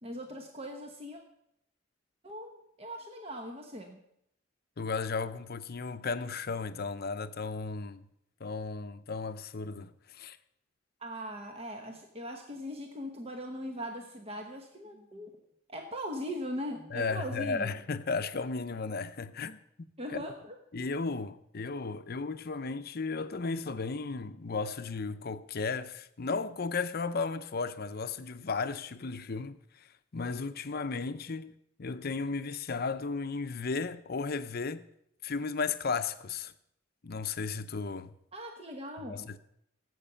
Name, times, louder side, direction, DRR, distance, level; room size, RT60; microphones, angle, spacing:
voice 1, 0.0-1.2 2.2-4.0 11.0-15.3 15.7-17.7 20.0-20.6 38.3-39.3, equal, 30° right, 1.1 m, -40 dB
voice 2, 4.8-8.1 8.4-10.4 16.9-19.6 20.1-20.2 20.7-29.9 30.1-31.5 31.8-34.8 35.2-36.5 37.0-38.1 39.1-39.4, left 4 dB, 50° left, 0.7 m, -35 dB
17.0 x 8.0 x 5.6 m
head